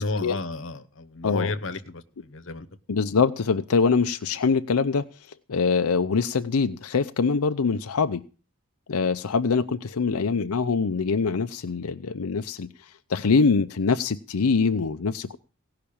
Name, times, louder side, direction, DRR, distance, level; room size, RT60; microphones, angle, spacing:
voice 1, 0.0-2.0 2.3-2.7, left 3 dB, 60° left, 1.0 m, -31 dB
voice 2, 2.9-5.0 5.5-8.2 8.9-15.4, left 5 dB, 85° left, 0.6 m, -24 dB
17.0 x 5.8 x 8.6 m
head